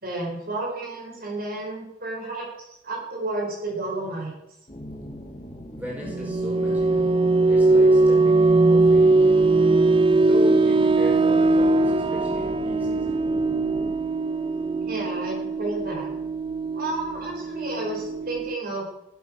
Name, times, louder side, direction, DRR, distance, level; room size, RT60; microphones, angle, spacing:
voice 1, 0.0-4.3 14.9-16.1 16.7-18.9, right 2 dB, 50° right, -2 dB, 4.7 m, -31 dB
sound 1, 4.7-13.9, equal, 30° left, 1.9 m, -39 dB
voice 2, 5.7-7.2 7.5-9.4 10.2-13.3, right 1 dB, 10° right, -4 dB, 4.7 m, -37 dB
sound 2, 6.0-18.6, right 2 dB, 25° right, 0.4 m, -20 dB
19.0 x 8.2 x 6.4 m, 0.87 s
head